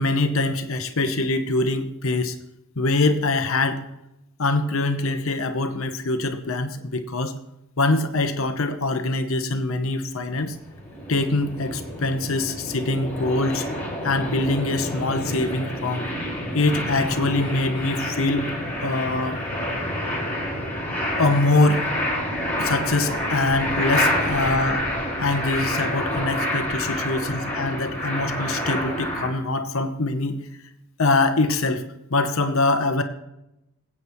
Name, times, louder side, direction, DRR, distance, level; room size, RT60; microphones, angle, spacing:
voice 1, 0.0-2.4 2.8-3.8 4.4-7.3 7.8-10.6 11.1-13.7 14.0-16.1 16.5-18.5 18.8-19.4 21.2-21.8 22.6-24.9 25.2-30.4 31.0-31.8 32.1-33.0, left 2 dB, 70° left, 8 dB, 0.9 m, -23 dB
sound 1, 10.4-29.3, equal, 10° left, 4.8 m, -28 dB
21.0 x 8.5 x 3.1 m, 0.88 s
head